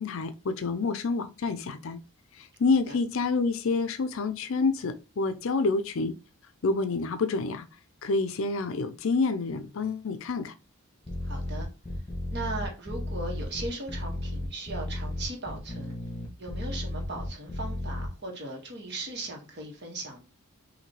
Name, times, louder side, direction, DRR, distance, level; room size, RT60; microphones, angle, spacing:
voice 1, 0.0-2.0 2.4-6.1 6.6-7.6 8.0-10.5, left 3 dB, 65° left, 0.5 m, -28 dB
sound 1, 11.1-18.1, left 1 dB, 15° left, 1.5 m, -34 dB
voice 2, 11.2-11.7 12.3-15.9 16.4-20.2, right 2 dB, 50° right, 1.5 m, -38 dB
5.8 x 2.7 x 3.0 m
head